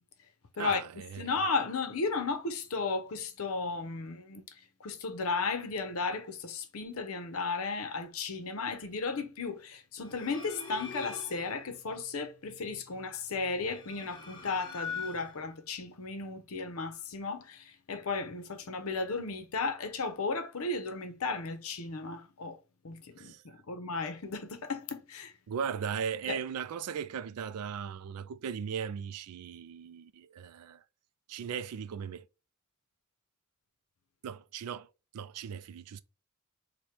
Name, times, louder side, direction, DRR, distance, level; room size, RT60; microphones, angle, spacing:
voice 1, 0.6-1.4 23.2-23.4 25.5-30.8 31.3-32.3 34.2-34.9 35.1-36.0, right 7 dB, 80° right, 0.4 m, -37 dB
voice 2, 1.2-4.4 4.8-22.6 22.8-25.3 26.3-26.4, left 4 dB, 70° left, 0.7 m, -34 dB
sound 1, 10.0-11.6 13.4-15.5, left 5 dB, 25° left, 1.0 m, -43 dB
4.3 x 2.2 x 3.2 m
head